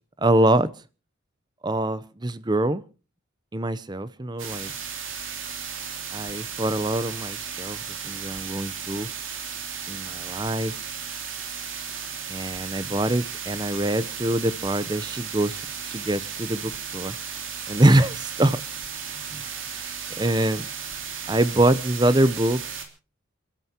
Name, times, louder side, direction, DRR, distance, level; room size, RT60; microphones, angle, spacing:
voice 1, 0.2-0.7 1.6-2.8 3.5-4.7 6.1-7.8 8.0-9.1 9.9-10.7 12.3-15.6 15.9-17.2 17.7-18.6 19.3-19.4 20.2-20.7 21.3-22.6, right 1 dB, 20° right, 0.7 m, -24 dB
sound 1, 4.4-22.8, right 7 dB, 70° right, 3.1 m, -35 dB
28.5 x 13.0 x 2.9 m
head